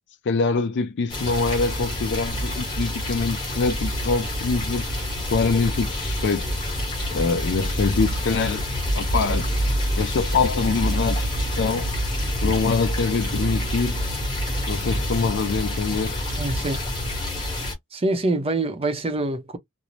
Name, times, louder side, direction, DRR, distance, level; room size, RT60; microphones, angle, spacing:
voice 1, 0.3-4.9 5.3-6.4 7.1-8.6 8.9-9.5 10.0-11.9 12.4-14.0 14.7-16.2, left 4 dB, 50° left, 0.4 m, -24 dB
sound 1, 1.1-17.7, equal, 20° left, 1.0 m, -27 dB
voice 2, 16.4-16.8 17.9-19.6, right 2 dB, 25° right, 0.6 m, -25 dB
2.4 x 2.0 x 3.0 m
head